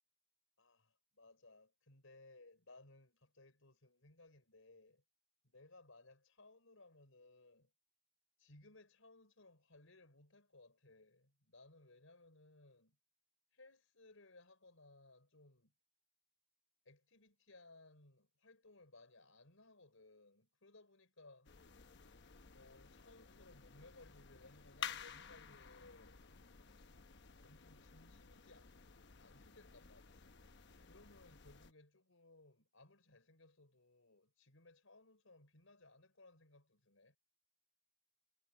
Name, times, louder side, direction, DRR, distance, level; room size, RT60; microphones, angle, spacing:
voice 1, 0.6-5.0 5.4-7.7 8.4-13.0 13.5-15.7 16.8-21.5 22.5-26.2 27.4-28.7 29.2-30.4 30.9-37.2, left 2 dB, 75° left, 5.0 m, -63 dB
sound 1, 21.4-31.7, left 8 dB, 55° left, 1.0 m, -53 dB
head